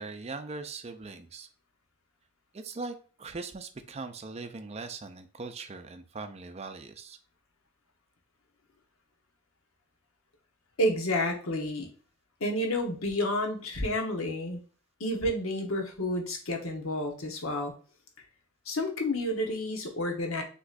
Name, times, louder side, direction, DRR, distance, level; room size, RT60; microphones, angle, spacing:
voice 1, 0.0-1.5 2.5-7.2, right 3 dB, 30° right, 8 dB, 0.5 m, -40 dB
voice 2, 10.8-11.9 12.4-14.6 15.0-17.7 18.7-20.4, left 1 dB, 80° left, 3 dB, 1.1 m, -30 dB
6.1 x 3.0 x 2.5 m, 0.39 s
head